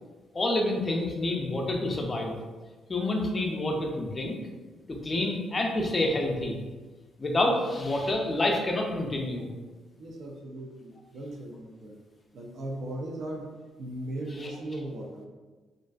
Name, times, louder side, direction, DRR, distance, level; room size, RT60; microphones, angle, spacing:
voice 1, 0.3-2.4 2.9-4.3 5.0-6.6 7.2-9.5 14.4-14.5, left 1 dB, 30° left, 1 dB, 0.4 m, -28 dB
voice 2, 10.0-12.0 12.3-15.2, right 1 dB, 65° right, -1 dB, 0.4 m, -38 dB
2.4 x 2.3 x 2.3 m, 1.3 s
cardioid pair, 90°, 0 cm